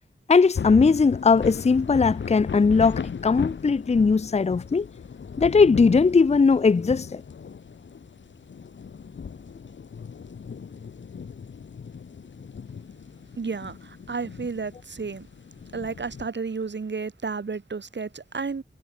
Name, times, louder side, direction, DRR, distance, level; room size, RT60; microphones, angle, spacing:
voice 1, 0.3-4.9 5.4-7.2, left 4 dB, 35° left, 0.5 m, -19 dB
sound 1, 0.5-16.3, left 6 dB, 75° left, 1.0 m, -37 dB
voice 2, 13.4-15.3 15.7-18.6, right 4 dB, 70° right, 3.3 m, -32 dB
wide cardioid pair, 75°, 19 cm